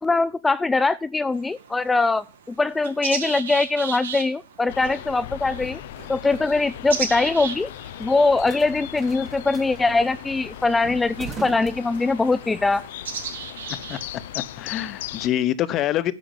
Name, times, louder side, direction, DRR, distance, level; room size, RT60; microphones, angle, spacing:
voice 1, 0.0-5.8 6.1-7.7 8.0-12.8, left 3 dB, 15° left, 0.5 m, -22 dB
sound 1, 1.3-15.2, right 6 dB, 85° right, 3.2 m, -37 dB
sound 2, 4.7-15.3, left 13 dB, 70° left, 0.5 m, -38 dB
sound 3, 5.2-12.5, right 6 dB, 30° right, 1.3 m, -44 dB
voice 2, 14.3-16.1, left 12 dB, 45° left, 1.1 m, -26 dB
10.5 x 7.1 x 7.2 m
hypercardioid pair, 100°, 0 cm